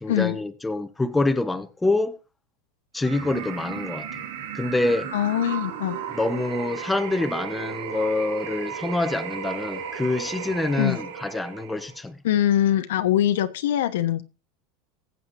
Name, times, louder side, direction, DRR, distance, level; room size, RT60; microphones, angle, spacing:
voice 1, 0.0-2.2 2.9-4.2 4.5-5.1 6.1-12.2, left 2 dB, 5° left, 0.9 m, -26 dB
sound 1, 3.0-12.0, right 8 dB, 90° right, 2.5 m, -35 dB
voice 2, 5.1-6.0 10.8-11.0 12.2-14.2, left 11 dB, 90° left, 1.0 m, -22 dB
19.5 x 7.9 x 2.6 m
supercardioid pair, 140°, 0 cm